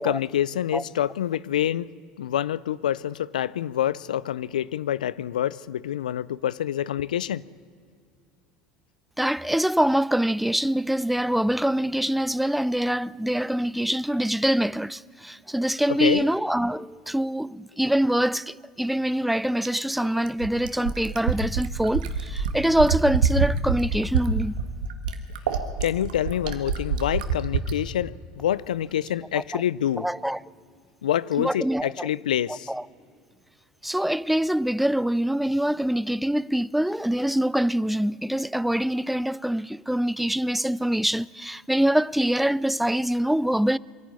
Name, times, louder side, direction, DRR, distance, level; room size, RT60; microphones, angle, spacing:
voice 1, 0.0-1.9 2.2-7.4 16.0-16.3 25.8-30.1 31.0-32.7, left 11 dB, 90° left, 0.5 m, -27 dB
voice 2, 9.2-24.6 29.5-29.6 30.0-30.4 31.4-32.1 32.7-32.8 33.8-43.8, right 1 dB, ahead, 0.4 m, -24 dB
Fill (with liquid), 19.6-27.8 29.1-29.2, right 7 dB, 85° right, 1.5 m, -26 dB
23.5 x 11.5 x 9.6 m
hypercardioid pair, 85°, 4 cm